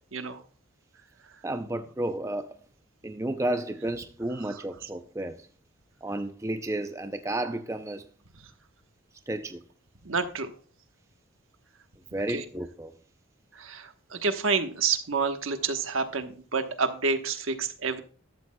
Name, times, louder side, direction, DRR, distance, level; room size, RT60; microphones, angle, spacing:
voice 1, 1.4-2.5 3.0-5.4 6.0-8.0 9.3-9.6 12.1-12.9, right 1 dB, 15° right, 0.5 m, -32 dB
voice 2, 4.5-4.9 10.0-10.5 12.3-12.4 13.5-18.0, right 5 dB, 75° right, 1.1 m, -29 dB
14.0 x 12.5 x 2.2 m
head